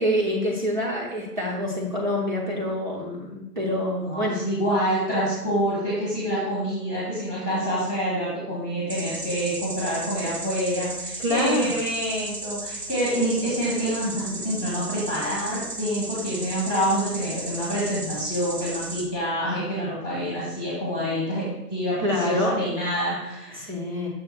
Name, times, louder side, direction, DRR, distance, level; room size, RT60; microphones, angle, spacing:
voice 1, 0.0-4.4 11.2-11.7 14.0-14.3 22.0-22.6 23.5-24.1, left 1 dB, 30° right, -5 dB, 0.8 m, -26 dB
voice 2, 4.0-21.4 21.7-23.7, equal, 5° right, -12 dB, 1.0 m, -27 dB
sound 1, 8.9-19.0, right 2 dB, 75° right, 1.8 m, -35 dB
6.4 x 3.5 x 6.0 m, 0.92 s
figure-of-eight pair, 150°, 48 cm